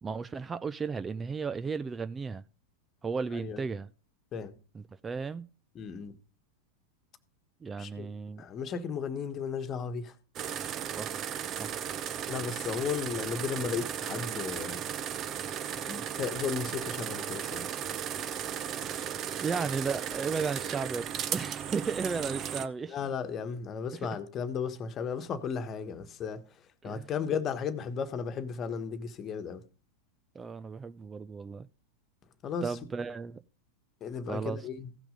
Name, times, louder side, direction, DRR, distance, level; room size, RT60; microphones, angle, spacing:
voice 1, 0.0-2.4 3.0-3.9 4.7-5.4 7.6-8.4 10.8-11.7 15.7-15.9 19.4-23.0 23.9-24.0 26.8-27.1 30.3-31.7 32.6-33.4 34.3-34.7, right 5 dB, 20° right, 0.5 m, -35 dB
voice 2, 3.3-3.6 4.3-4.6 5.7-6.2 7.8-8.1 8.4-10.1 12.3-14.8 15.9-17.7 22.9-26.4 26.8-29.6 32.4-32.8 34.0-34.9, left 6 dB, 35° left, 1.4 m, -35 dB
sound 1, 10.4-22.7, right 9 dB, 35° right, 0.9 m, -36 dB
15.5 x 6.0 x 5.2 m
figure-of-eight pair, 90°, 0 cm